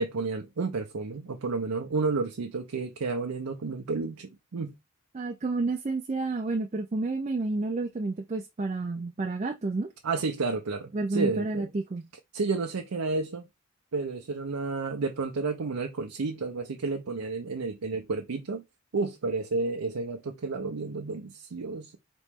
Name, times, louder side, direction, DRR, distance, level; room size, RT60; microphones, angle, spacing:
voice 1, 0.0-4.7 10.0-11.7 12.3-13.4 13.9-18.6 18.9-22.0, right 4 dB, 90° right, 0.6 m, -31 dB
voice 2, 5.1-9.9 10.9-12.1, right 3 dB, 30° right, 0.4 m, -30 dB
4.2 x 3.0 x 3.5 m
head